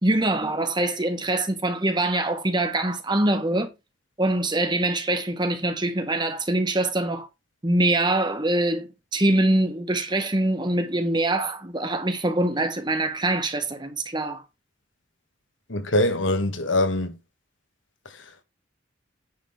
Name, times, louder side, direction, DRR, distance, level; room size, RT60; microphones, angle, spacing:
voice 1, 0.0-3.7 4.2-7.3 7.6-14.4, right 1 dB, 20° right, 1.5 m, -24 dB
voice 2, 15.7-17.1 18.0-18.4, left 1 dB, 70° left, 1.5 m, -24 dB
9.8 x 3.8 x 6.5 m
head